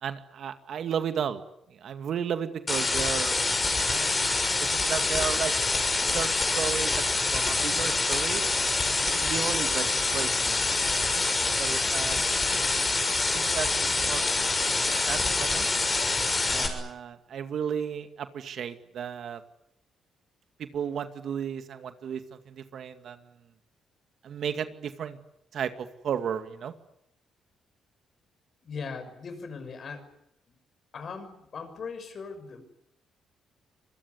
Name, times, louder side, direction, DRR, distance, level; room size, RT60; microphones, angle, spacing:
voice 1, 0.0-1.4 1.7-3.4 3.9-4.2 4.7-5.5 6.0-8.5 9.0-12.2 13.3-14.2 15.1-15.7 16.5-19.4 20.6-23.2 24.2-25.2 25.5-26.7, right 8 dB, 65° right, 9 dB, 2.2 m, -34 dB
sound 1, 2.7-16.7, left 3 dB, 25° left, 6.7 m, -26 dB
voice 2, 28.6-30.1 30.9-32.6, left 5 dB, 50° left, 9 dB, 6.4 m, -39 dB
26.0 x 21.5 x 9.8 m, 0.77 s
cardioid pair, 90°, 0 cm